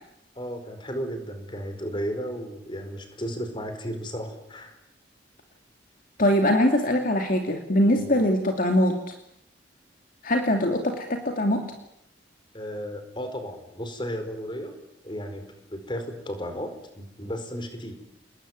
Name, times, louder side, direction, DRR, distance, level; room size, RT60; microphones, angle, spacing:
voice 1, 0.3-4.7 12.5-14.7 15.0-17.9, equal, 25° left, 7 dB, 4.7 m, -34 dB
voice 2, 6.2-9.1 10.2-11.7, left 1 dB, 45° left, 4 dB, 2.6 m, -22 dB
29.5 x 20.5 x 9.6 m, 0.80 s
head